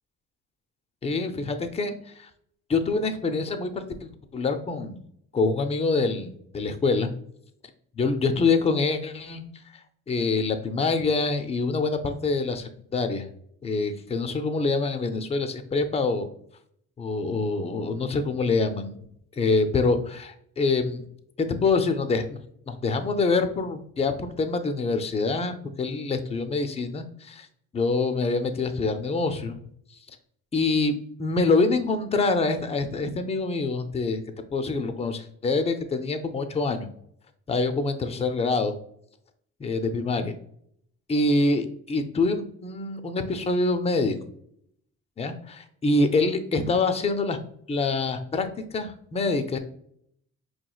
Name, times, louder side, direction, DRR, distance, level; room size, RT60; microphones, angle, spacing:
voice 1, 1.0-2.3 2.7-5.0 5.3-7.1 8.0-9.4 10.1-13.3 13.6-16.3 17.0-19.0 19.4-21.1 21.4-22.4 22.7-27.5 27.7-29.6 30.5-30.9 31.2-34.2 34.5-36.9 37.5-38.7 39.6-40.3 41.1-44.2 45.2-47.4 47.7-48.5 48.7-49.6, left 3 dB, 20° left, 8 dB, 0.4 m, -25 dB
4.8 x 3.0 x 2.3 m, 0.69 s
cardioid pair, 90°, 30 cm